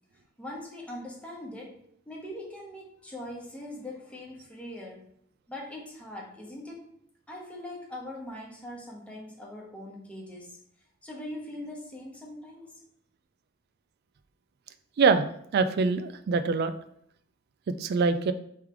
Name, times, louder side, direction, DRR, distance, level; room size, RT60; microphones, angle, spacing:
voice 1, 0.4-1.8 2.1-5.1 5.5-6.8 7.3-10.6 11.0-12.8, left 1 dB, 5° left, -3 dB, 1.1 m, -41 dB
voice 2, 15.5-16.7 17.7-18.3, right 4 dB, 50° right, 11 dB, 0.3 m, -24 dB
3.6 x 3.3 x 4.5 m, 0.69 s
head